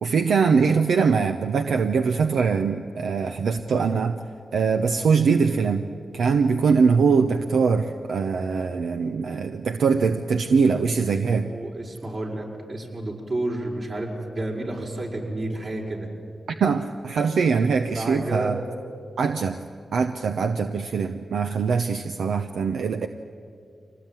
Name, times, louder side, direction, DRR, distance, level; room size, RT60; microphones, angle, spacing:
voice 1, 0.0-4.2 4.5-5.9 6.1-11.5 16.6-18.6 19.2-19.6 19.9-23.1, right 5 dB, 85° right, 7 dB, 0.8 m, -22 dB
voice 2, 11.3-16.1 17.9-18.5, right 1 dB, 55° right, -1 dB, 5.8 m, -31 dB
24.5 x 19.0 x 9.3 m, 2.3 s
cardioid pair, 55°, 0 cm